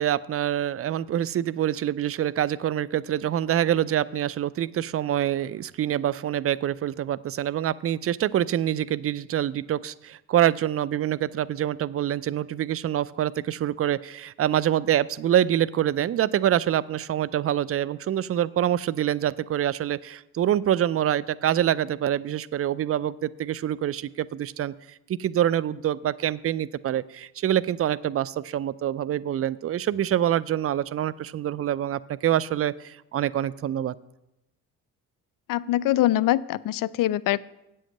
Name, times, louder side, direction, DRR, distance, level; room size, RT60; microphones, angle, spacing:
voice 1, 0.0-24.7 25.2-34.0, right 11 dB, 35° right, 19 dB, 0.5 m, -25 dB
voice 2, 35.5-37.4, left 14 dB, 50° left, 18 dB, 0.5 m, -23 dB
8.4 x 7.7 x 6.4 m, 0.89 s
hypercardioid pair, 45°, 43 cm